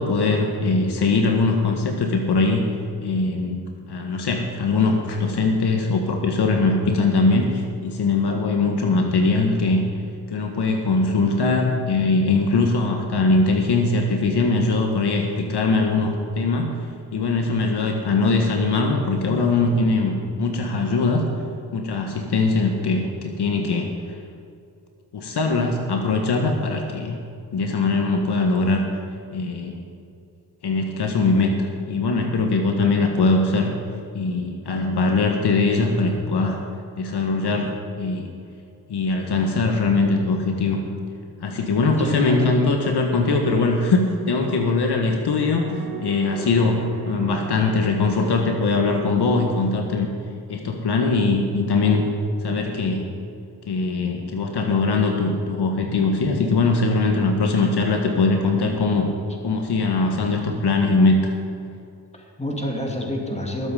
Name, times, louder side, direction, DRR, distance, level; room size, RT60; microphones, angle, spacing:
voice 1, 0.0-2.7 3.0-3.6 3.9-9.8 10.3-16.7 17.1-21.2 21.7-23.9 25.1-27.2 27.5-28.8 29.3-29.8 30.6-33.7 34.1-36.6 37.0-38.3 38.9-40.8 41.4-45.7 46.0-50.1 50.5-52.0 52.4-53.1 53.6-59.1 59.4-61.3, left 3 dB, 70° left, 2 dB, 1.6 m, -21 dB
voice 2, 42.0-42.8 62.1-63.7, equal, 15° left, 0 dB, 2.8 m, -28 dB
sound 1, 42.7-49.4, right 6 dB, 60° right, 1.8 m, -38 dB
20.0 x 7.8 x 5.1 m, 2.5 s
cardioid pair, 70°, 41 cm